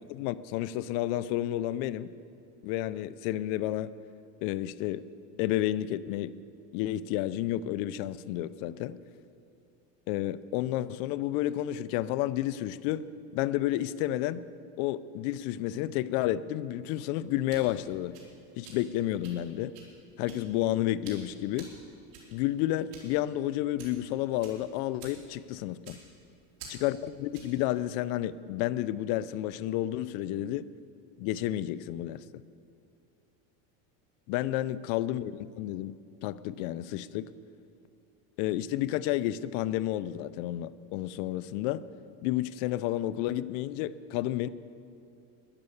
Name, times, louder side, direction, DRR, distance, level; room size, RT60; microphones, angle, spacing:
voice 1, 0.1-2.1 2.6-3.9 4.4-5.1 5.4-6.3 6.7-9.0 10.1-13.0 13.3-14.4 14.8-18.2 18.6-19.8 20.2-21.7 22.3-26.0 26.7-30.7 31.2-32.2 34.3-37.3 38.4-41.8 42.2-44.5, left 13 dB, 70° left, 16 dB, 0.6 m, -31 dB
sound 1, 17.2-27.6, right 4 dB, 70° right, 4.0 m, -52 dB
12.5 x 11.0 x 7.1 m, 2.5 s
supercardioid pair, 130°, 43 cm